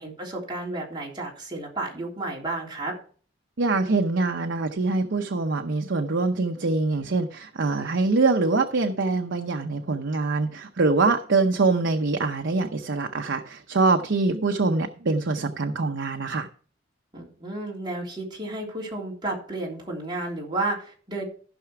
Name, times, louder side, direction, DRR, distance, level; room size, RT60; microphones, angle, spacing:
voice 1, 0.0-2.9 17.1-21.2, right 2 dB, 25° right, 3.4 m, -32 dB
voice 2, 3.6-16.5, right 3 dB, 70° right, 0.7 m, -24 dB
15.0 x 5.8 x 4.7 m
head